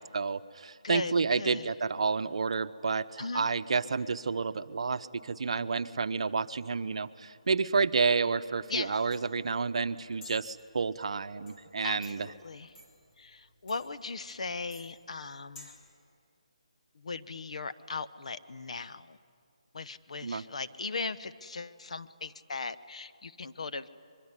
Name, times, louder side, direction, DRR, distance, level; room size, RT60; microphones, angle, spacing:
voice 1, 0.0-12.3 20.2-20.4, right 4 dB, 60° right, 12 dB, 0.9 m, -30 dB
voice 2, 0.8-1.7 3.2-3.5 8.7-9.0 11.8-12.7 13.2-15.7 16.9-19.2 19.7-23.9, left 4 dB, 65° left, 11 dB, 1.0 m, -38 dB
sound 1, 8.7-15.9, left 3 dB, 25° left, 3.3 m, -55 dB
24.0 x 22.5 x 9.8 m, 2.4 s
hypercardioid pair, 160°, 4 cm